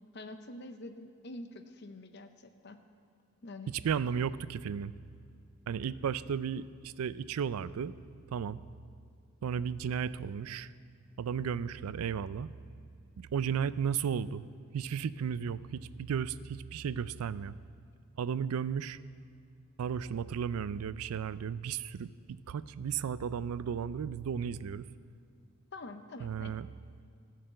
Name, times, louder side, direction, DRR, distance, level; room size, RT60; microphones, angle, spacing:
voice 1, 0.1-2.8 3.4-3.7 25.7-26.6, left 2 dB, 50° left, 8 dB, 0.7 m, -46 dB
voice 2, 3.8-4.9 5.7-7.9 8.3-8.6 9.4-10.7 11.2-12.5 13.2-14.5 14.7-17.5 18.2-19.0 19.8-24.8 26.2-26.7, right 7 dB, 90° right, 17 dB, 0.4 m, -34 dB
14.0 x 6.6 x 7.7 m, 2.2 s
head